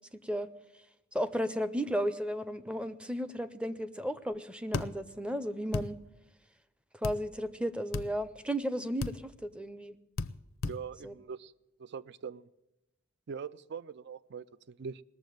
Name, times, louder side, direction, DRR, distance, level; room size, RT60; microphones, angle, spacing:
voice 1, 1.1-6.0 7.0-10.0 11.0-11.1, equal, 5° right, 13 dB, 0.6 m, -34 dB
sound 1, 4.7-4.9 5.7-5.9 7.0-7.2 7.9-8.1 9.0-9.2 10.2-10.3 10.6-10.8, left 3 dB, 75° left, 0.6 m, -33 dB
voice 2, 10.6-11.5 11.8-12.5 13.3-15.0, right 6 dB, 55° right, 18 dB, 0.4 m, -42 dB
19.0 x 7.2 x 9.2 m, 0.91 s
head